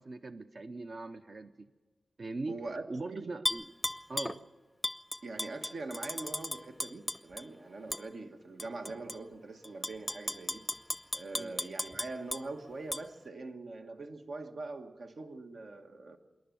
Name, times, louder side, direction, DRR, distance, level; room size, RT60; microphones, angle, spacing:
voice 1, 0.0-1.7 2.2-3.7 4.1-4.5 11.3-11.5, right 3 dB, 55° right, 0.6 m, -41 dB
voice 2, 2.5-3.3 5.2-10.7 11.1-16.2, right 3 dB, 85° right, 1.4 m, -43 dB
Tap / Glass, 3.5-4.4 4.8-7.4 7.9-8.0 8.6-9.2 9.6-12.4 12.9-13.0, left 1 dB, 15° left, 0.5 m, -35 dB
26.0 x 11.0 x 9.1 m
wide cardioid pair, 110°, 0 cm